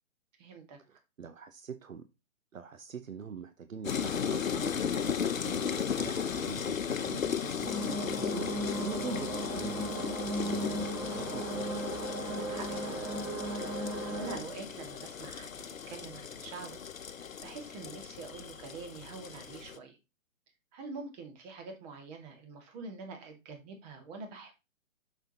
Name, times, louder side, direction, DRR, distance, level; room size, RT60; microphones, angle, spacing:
voice 1, 0.4-0.8 12.2-13.1 13.5-15.5 15.9-16.8 17.4-20.0 20.7-24.5, right 4 dB, 30° right, 4 dB, 2.0 m, -45 dB
voice 2, 0.9-2.1 2.5-4.7 5.4-5.7 5.9-8.5 8.8-11.8, right 6 dB, 75° right, 9 dB, 0.9 m, -44 dB
sound 1, 3.8-19.8, left 7 dB, 75° left, 0.8 m, -36 dB
sound 2, 7.6-14.4, right 1 dB, 15° right, 1.2 m, -36 dB
7.9 x 6.4 x 2.9 m, 0.25 s
figure-of-eight pair, 125°, 40 cm